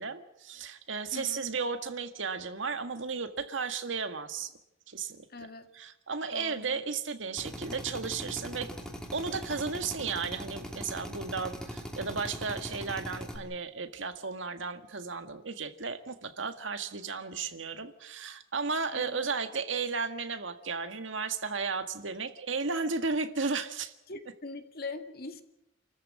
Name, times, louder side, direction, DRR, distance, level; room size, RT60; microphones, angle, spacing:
voice 1, 0.0-4.5 4.9-5.3 5.7-8.7 9.1-23.9, right 4 dB, 85° right, 8 dB, 1.8 m, -34 dB
voice 2, 1.1-1.4 5.3-5.7 6.3-6.8 18.9-19.2 24.1-25.4, left 3 dB, 55° left, 7 dB, 2.1 m, -42 dB
Drill, 7.4-13.4, equal, 5° left, 3.0 m, -41 dB
29.0 x 14.0 x 8.6 m, 0.84 s
head